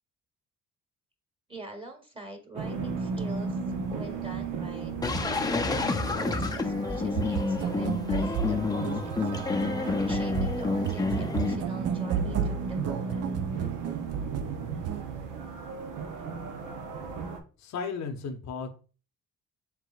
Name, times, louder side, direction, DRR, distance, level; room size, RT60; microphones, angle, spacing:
voice 1, 1.5-3.6 3.9-9.5 9.8-13.2, right 2 dB, 15° right, 4 dB, 1.2 m, -44 dB
sound 1, 2.5-17.4, right 4 dB, 90° right, 0.8 m, -35 dB
sound 2, 5.0-11.6, left 3 dB, 15° left, 0.5 m, -29 dB
sound 3, 7.2-15.0, right 8 dB, 55° right, 0.4 m, -33 dB
voice 2, 17.6-18.7, left 5 dB, 65° left, 5 dB, 0.7 m, -34 dB
4.7 x 3.6 x 2.4 m, 0.36 s
cardioid pair, 90°, 30 cm